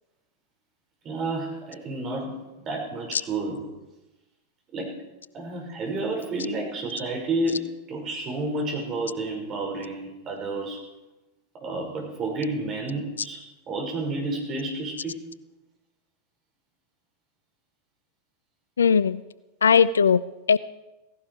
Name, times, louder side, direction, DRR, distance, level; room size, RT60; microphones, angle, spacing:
voice 1, 1.0-3.7 4.7-4.9 5.3-10.8 11.6-15.2, right 2 dB, 30° right, 0 dB, 6.1 m, -30 dB
voice 2, 18.8-19.2 19.6-20.6, left 6 dB, 70° left, 19 dB, 0.4 m, -19 dB
16.5 x 16.5 x 4.9 m, 1.0 s
figure-of-eight pair, 90°, 0 cm